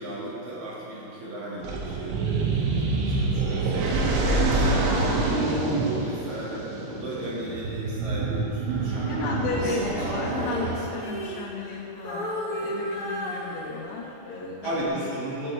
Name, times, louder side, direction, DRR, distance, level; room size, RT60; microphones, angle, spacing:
voice 1, 0.0-9.9 14.6-15.5, right 1 dB, 55° right, -7 dB, 3.3 m, -35 dB
sound 1, 1.6-11.1, right 3 dB, 85° right, 3.3 m, -26 dB
voice 2, 4.5-4.9 9.1-15.0, left 3 dB, 75° left, -6 dB, 3.7 m, -33 dB
Female singing, 9.5-11.8 12.0-14.1 14.6-14.9, equal, 40° left, 2.1 m, -34 dB
15.0 x 6.1 x 3.4 m, 2.7 s
omnidirectional pair, 5.3 m